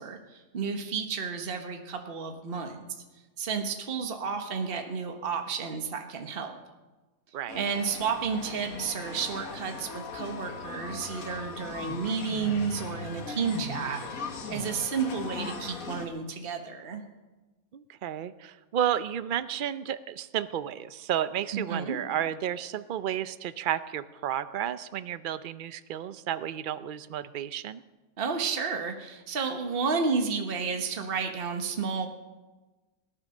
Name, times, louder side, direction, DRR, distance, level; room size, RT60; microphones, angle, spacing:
voice 1, 0.0-2.8 3.4-6.6 7.5-14.0 14.5-17.0 21.5-22.0 28.2-32.1, right 5 dB, 40° right, 5 dB, 1.4 m, -31 dB
voice 2, 7.3-7.7 17.7-27.8, right 10 dB, 80° right, 14 dB, 0.4 m, -32 dB
sound 1, 7.5-16.1, left 4 dB, 70° left, 1.8 m, -39 dB
18.5 x 10.0 x 6.4 m, 1.2 s
omnidirectional pair, 1.6 m